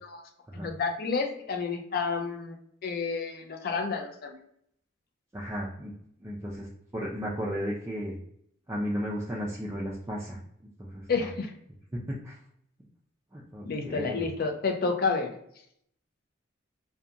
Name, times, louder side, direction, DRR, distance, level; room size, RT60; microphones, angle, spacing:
voice 1, 0.5-2.5 2.8-4.4 11.1-11.5 13.7-15.3, left 4 dB, 50° left, 4 dB, 0.4 m, -30 dB
voice 2, 5.3-5.9 6.2-6.7 6.9-8.2 8.7-10.4 10.8-11.3 11.9-12.4 13.3-14.3, equal, 15° right, -5 dB, 0.3 m, -34 dB
2.7 x 2.2 x 2.4 m, 0.71 s
head